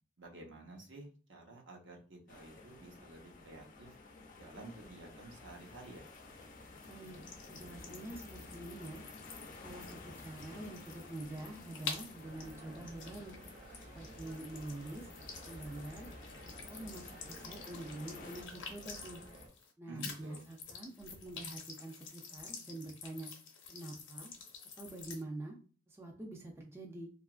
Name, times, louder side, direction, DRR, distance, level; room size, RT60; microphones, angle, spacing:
voice 1, 0.2-4.0 4.3-6.1 19.9-20.5, right 2 dB, 75° right, 0 dB, 0.8 m, -52 dB
sound 1, 2.3-18.4, left 3 dB, 45° left, 0.4 m, -53 dB
sound 2, 5.5-19.7 20.0-25.2, left 5 dB, 80° left, 0.7 m, -50 dB
voice 2, 6.8-7.2 7.5-9.0 9.6-13.4 13.9-15.1 15.4-16.1 16.4-19.2 19.8-23.3 23.7-24.3 24.8-25.6 25.9-27.1, right 2 dB, 15° right, -1 dB, 0.4 m, -46 dB
sound 3, 12.2-19.5, right 1 dB, 40° right, 1.1 m, -53 dB
2.8 x 2.4 x 2.3 m, 0.39 s
head